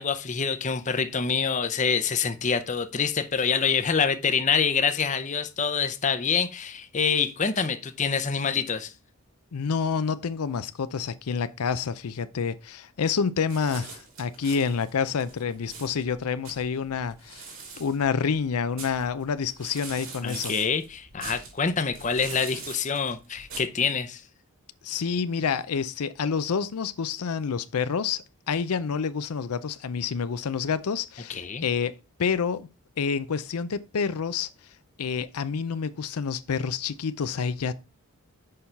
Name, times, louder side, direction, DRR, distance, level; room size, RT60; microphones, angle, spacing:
voice 1, 0.0-8.9 20.2-24.2 31.3-31.6, left 6 dB, 35° left, 0.6 m, -26 dB
voice 2, 9.5-17.5 17.8-20.5 24.8-31.9 32.2-32.7 33.0-34.5 35.0-37.7, left 6 dB, 85° left, 0.5 m, -28 dB
sound 1, 13.5-23.6, right 4 dB, 60° right, 3.3 m, -43 dB
6.6 x 5.5 x 4.5 m
head